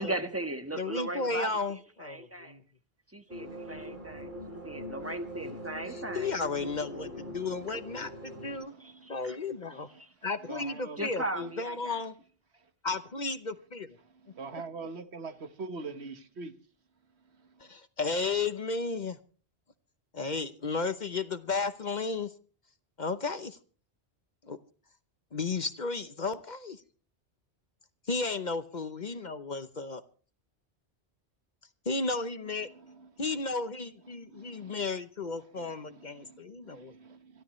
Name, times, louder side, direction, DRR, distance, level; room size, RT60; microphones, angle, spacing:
voice 1, 0.0-2.6 3.1-6.3 8.8-9.4 11.0-12.0, right 2 dB, 15° right, 1.4 m, -37 dB
voice 2, 0.7-2.6 5.9-8.7 9.1-9.9 10.2-12.1 12.8-14.0 14.5-14.6 17.6-19.2 20.1-22.3 23.0-23.6 24.4-24.6 25.3-26.8 28.1-30.0 31.9-32.7 33.2-36.9, left 4 dB, 45° left, 1.0 m, -34 dB
sound 1, 3.3-8.6, equal, 45° right, 4.0 m, -42 dB
voice 3, 8.5-9.2 9.7-10.0 10.5-11.0 14.0-16.6 17.4-17.7 32.6-33.1 34.1-34.9 35.6-37.4, right 4 dB, 75° right, 1.5 m, -45 dB
27.0 x 12.5 x 3.1 m
omnidirectional pair, 1.1 m